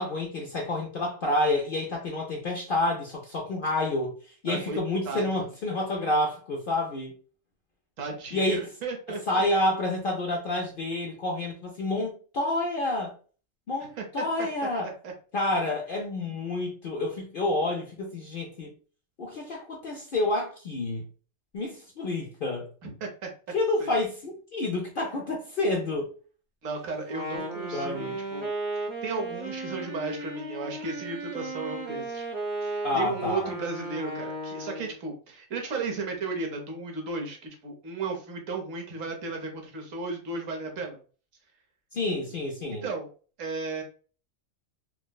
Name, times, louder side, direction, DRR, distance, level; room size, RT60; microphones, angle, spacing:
voice 1, 0.0-4.1 4.4-7.1 8.3-8.6 9.3-13.1 13.7-14.9 15.3-18.7 19.2-21.0 21.5-22.7 23.5-26.1 27.7-28.2 32.8-33.5 41.9-42.8, left 2 dB, 55° left, 0.6 m, -29 dB
voice 2, 4.4-4.8 5.0-5.5 8.0-9.4 14.0-14.5 15.0-15.1 22.8-23.3 23.8-24.0 26.6-28.5 28.8-32.3 32.6-41.0 42.7-43.1 43.4-43.8, right 3 dB, 70° right, 1.2 m, -35 dB
Wind instrument woodwind instrument, 27.0-35.0, right 2 dB, 35° right, 0.9 m, -35 dB
4.3 x 2.0 x 2.2 m
omnidirectional pair, 1.4 m